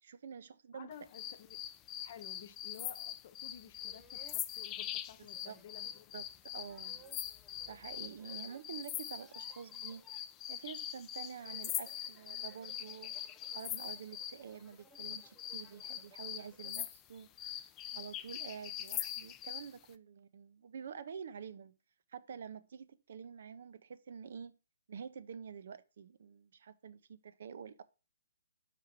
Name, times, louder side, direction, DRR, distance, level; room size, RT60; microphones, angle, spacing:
voice 1, 0.0-0.9 5.2-5.6 6.1-6.3 6.5-7.0 7.7-13.2 13.5-21.7 22.1-24.6 24.9-27.8, right 7 dB, 60° right, 0.6 m, -48 dB
voice 2, 0.7-1.6 2.0-6.0 6.6-6.7, left 9 dB, 45° left, 0.9 m, -53 dB
sound 1, 1.1-14.4 14.9-19.7, left 11 dB, 20° left, 0.4 m, -42 dB
sound 2, 2.2-2.3 2.8-2.9 3.5-3.6 3.8-4.5 5.3-6.1 6.6-8.6 8.9-10.2 11.2-16.9, right 2 dB, 5° right, 0.8 m, -63 dB
5.1 x 4.6 x 5.9 m
hypercardioid pair, 140°, 0 cm